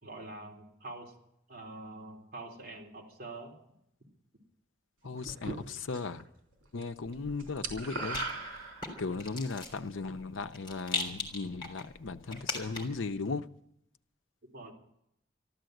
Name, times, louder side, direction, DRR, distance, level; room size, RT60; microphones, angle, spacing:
voice 1, 0.0-1.1 1.5-3.6 14.5-14.7, right 2 dB, 50° right, 3.4 m, -45 dB
voice 2, 5.0-6.2 6.7-8.6 9.0-13.5, left 4 dB, 90° left, 0.7 m, -37 dB
sound 1, 5.2-6.2 6.5-6.9 7.1-9.2, right 3 dB, 80° right, 3.5 m, -39 dB
Rattle, 7.0-13.1, left 3 dB, 25° left, 3.5 m, -41 dB
13.5 x 13.0 x 7.9 m
head